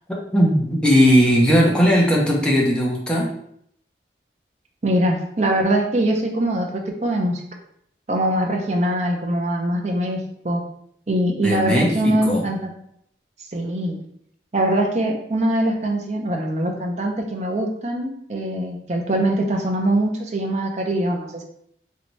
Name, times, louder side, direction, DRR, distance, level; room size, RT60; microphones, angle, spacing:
voice 1, 0.3-3.2 11.4-12.4, equal, 5° left, -3 dB, 0.7 m, -17 dB
voice 2, 4.8-7.4 8.1-10.2 10.4-10.6 11.1-12.7 13.5-14.0 14.5-21.4, right 1 dB, 40° right, 2 dB, 0.5 m, -22 dB
3.2 x 2.8 x 3.1 m, 0.70 s
head